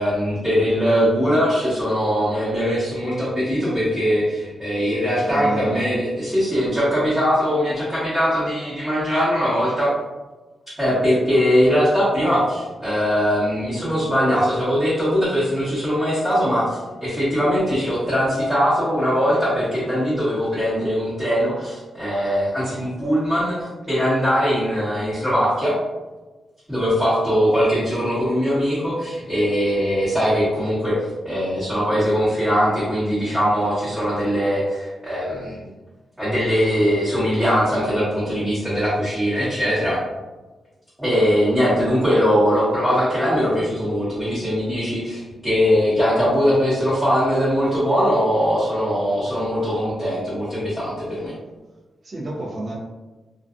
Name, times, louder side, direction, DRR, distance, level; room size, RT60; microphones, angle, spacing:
voice 1, 0.0-9.9 10.8-25.7 26.7-31.0 31.2-35.7 36.2-40.0 41.0-51.3, equal, 5° right, -13 dB, 1.0 m, -21 dB
voice 2, 5.2-5.9 52.0-52.8, right 1 dB, 50° right, -4 dB, 0.6 m, -29 dB
2.5 x 2.3 x 2.4 m, 1.2 s
cardioid pair, 100°, 0 cm